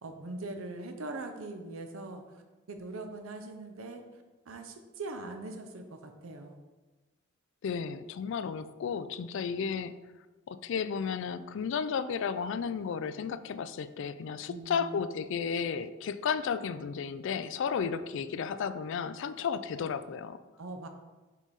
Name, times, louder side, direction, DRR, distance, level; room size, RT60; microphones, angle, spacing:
voice 1, 0.0-2.4 2.7-4.0 4.5-6.6 14.5-15.1 20.6-20.9, right 2 dB, 90° right, 5 dB, 0.6 m, -41 dB
voice 2, 7.6-9.9 10.5-20.4, left 6 dB, 65° left, 13 dB, 0.3 m, -33 dB
5.5 x 4.7 x 4.1 m, 1.2 s
head